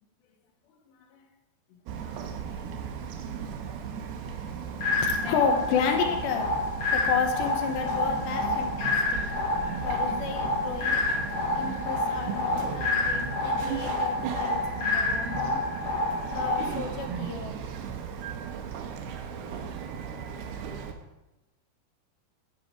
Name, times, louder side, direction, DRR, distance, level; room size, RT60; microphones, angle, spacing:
Bird vocalization bird call bird song, 1.9-20.9, right 7 dB, 75° right, 2.7 m, -36 dB
voice 1, 4.3-4.7 5.0-6.5 6.9-9.2 9.8-11.1 11.6-15.6 16.3-17.6, left 6 dB, 80° left, 4 dB, 3.4 m, -32 dB
sound 1, 4.8-16.8, left 3 dB, 55° left, 3.3 m, -29 dB
11.0 x 10.5 x 4.9 m, 1.0 s
omnidirectional pair, 5.1 m